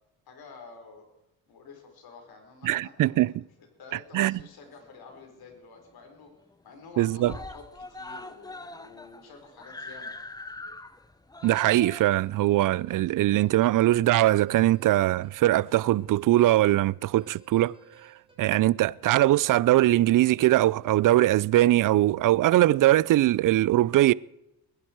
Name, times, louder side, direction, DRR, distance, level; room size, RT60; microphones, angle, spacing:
voice 1, 0.3-1.1 1.5-3.2 3.8-6.3 6.6-10.1, left 4 dB, 60° left, 4.7 m, -49 dB
voice 2, 2.6-3.3 4.1-4.4 7.0-7.3 11.4-17.7 18.4-24.1, right 15 dB, 50° right, 0.4 m, -21 dB
Screaming, 4.3-5.2 5.6-5.7 6.0-6.1 6.4-6.9 7.2-14.0 14.8-14.9, left 2 dB, 10° left, 0.8 m, -43 dB
sound 1, 11.4-16.9 17.2-18.4, right 2 dB, 10° right, 3.5 m, -57 dB
21.0 x 11.0 x 4.6 m
cardioid pair, 95°, 42 cm